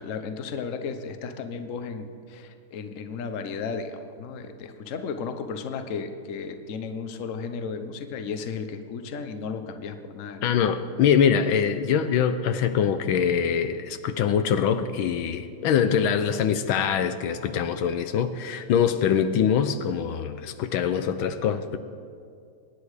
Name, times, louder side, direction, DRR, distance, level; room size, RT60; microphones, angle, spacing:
voice 1, 0.0-10.7, left 5 dB, 50° left, 7 dB, 1.0 m, -34 dB
voice 2, 10.4-21.8, left 7 dB, 75° left, 10 dB, 1.5 m, -23 dB
23.0 x 10.0 x 4.9 m, 2.3 s
omnidirectional pair, 2.3 m